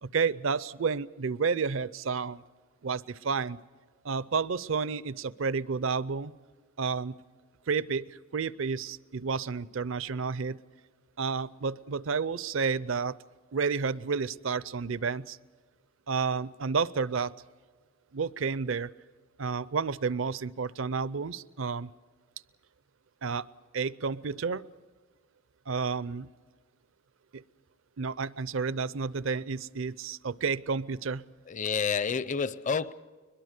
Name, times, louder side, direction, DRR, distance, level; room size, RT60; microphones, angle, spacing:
voice 1, 0.0-2.4 2.8-3.6 4.0-6.3 6.8-7.1 7.7-10.6 11.2-13.2 13.5-15.4 16.1-17.3 18.1-18.9 19.4-21.9 23.2-23.4 23.7-24.6 25.7-26.3 27.3-27.4 28.0-31.2, right 5 dB, 70° right, 0.6 m, -31 dB
voice 2, 31.5-32.9, left 6 dB, 35° left, 0.6 m, -29 dB
22.0 x 22.0 x 6.6 m
head